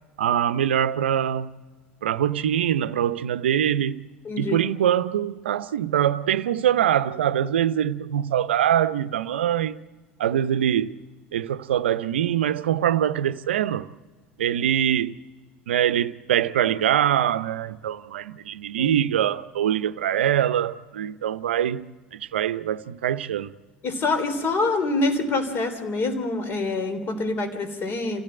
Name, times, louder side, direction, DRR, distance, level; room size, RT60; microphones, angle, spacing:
voice 1, 0.2-1.5 2.0-4.0 4.4-9.8 10.2-11.0 11.3-13.9 14.4-15.1 15.7-23.5, right 10 dB, 75° right, 0.6 m, -23 dB
voice 2, 4.3-4.6 18.8-18.9 23.8-28.2, left 3 dB, 40° left, 3.5 m, -25 dB
27.5 x 15.5 x 7.7 m
hypercardioid pair, 75°, 6 cm